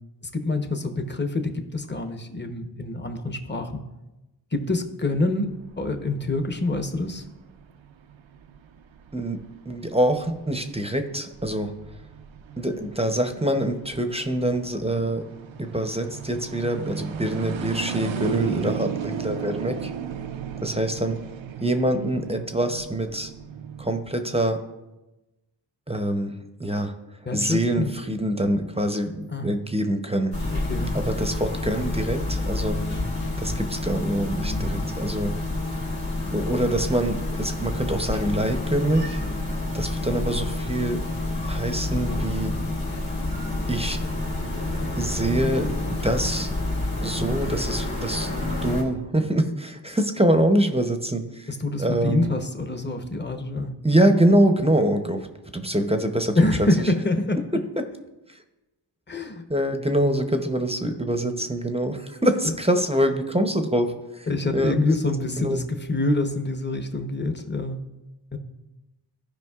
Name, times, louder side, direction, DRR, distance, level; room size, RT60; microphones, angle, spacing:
voice 1, 0.3-3.8 4.5-7.2 27.3-27.9 29.3-29.5 30.5-31.1 51.5-53.7 56.4-57.4 59.1-59.4 62.4-62.5 64.3-67.9 68.3-68.4, left 2 dB, 25° left, 6 dB, 0.8 m, -26 dB
sound 1, 5.1-24.0, right 7 dB, 85° right, 0.6 m, -36 dB
voice 2, 9.1-11.7 12.6-15.2 15.6-19.9 20.6-21.2 21.6-23.3 23.8-24.6 25.9-26.9 27.3-30.4 30.9-32.8 33.4-35.3 36.3-39.2 39.7-41.0 41.5-42.5 43.7-44.0 45.0-46.5 47.0-48.3 48.6-51.5 51.8-52.3 53.8-55.3 55.5-56.4 59.5-64.3 64.5-65.0 65.4-65.6, right 1 dB, 15° right, 7 dB, 0.6 m, -25 dB
sound 2, 30.3-48.8, left 2 dB, 70° left, 2.3 m, -28 dB
15.0 x 5.1 x 2.4 m, 1.0 s
wide cardioid pair, 65°, 45 cm